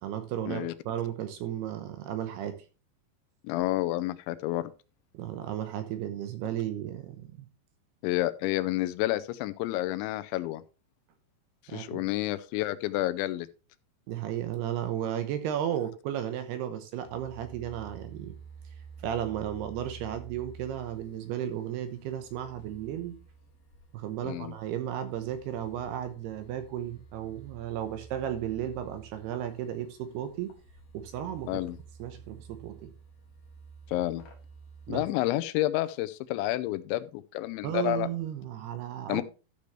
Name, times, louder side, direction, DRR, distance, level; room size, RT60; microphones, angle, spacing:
voice 1, 0.0-2.6 5.1-7.5 11.7-12.0 14.1-18.3 19.0-23.2 23.9-30.5 30.9-31.6 32.0-32.9 34.9-35.1 37.6-39.2, right 10 dB, 75° right, 2.7 m, -34 dB
voice 2, 3.4-4.7 8.0-10.6 11.7-13.5 24.2-24.5 31.5-31.8 33.9-34.2 34.9-38.1 39.1-39.2, left 16 dB, 85° left, 3.0 m, -30 dB
sound 1, 17.0-35.1, right 5 dB, 60° left, 3.3 m, -51 dB
13.5 x 6.8 x 3.1 m
omnidirectional pair, 5.3 m